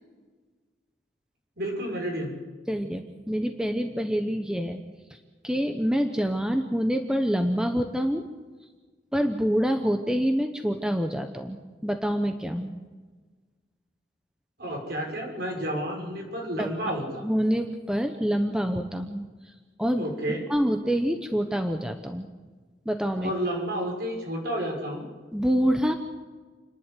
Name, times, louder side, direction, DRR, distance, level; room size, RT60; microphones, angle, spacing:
voice 1, 1.6-2.3 14.6-17.2 20.0-20.4 23.2-25.1, right 1 dB, 55° right, 0 dB, 6.1 m, -31 dB
voice 2, 2.7-4.8 5.1-5.2 5.4-8.2 9.1-11.6 11.8-12.8 16.6-16.7 17.2-19.2 19.8-20.1 20.5-22.3 22.9-23.3 25.3-25.9, equal, 5° right, 6 dB, 0.9 m, -26 dB
29.0 x 11.0 x 8.2 m, 1.4 s
head